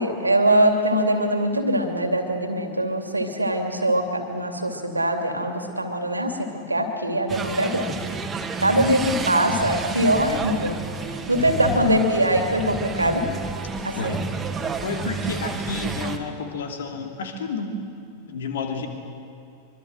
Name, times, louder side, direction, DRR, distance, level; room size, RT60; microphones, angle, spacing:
voice 1, 0.0-8.0 8.6-10.7 11.1-13.3 13.8-14.2, right 1 dB, 85° right, 5 dB, 2.6 m, -22 dB
sound 1, 7.3-16.2, right 4 dB, 15° right, 2.2 m, -30 dB
voice 2, 11.3-12.0 14.0-14.3 14.8-17.8 18.2-18.9, left 4 dB, 60° left, 4 dB, 2.8 m, -31 dB
24.5 x 24.5 x 7.7 m, 2.6 s
figure-of-eight pair, 90°, 0 cm